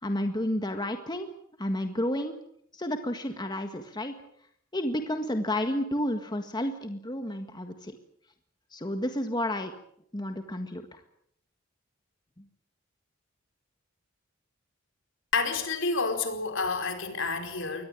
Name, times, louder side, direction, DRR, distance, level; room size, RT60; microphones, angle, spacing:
voice 1, 0.0-1.3 1.6-2.4 2.7-4.1 4.7-7.9 8.7-9.7 10.1-11.0 12.4-12.5, left 1 dB, 20° left, 6 dB, 1.7 m, -31 dB
voice 2, 15.3-17.8, left 4 dB, 65° left, 6 dB, 4.8 m, -29 dB
23.5 x 19.5 x 8.8 m, 0.69 s
head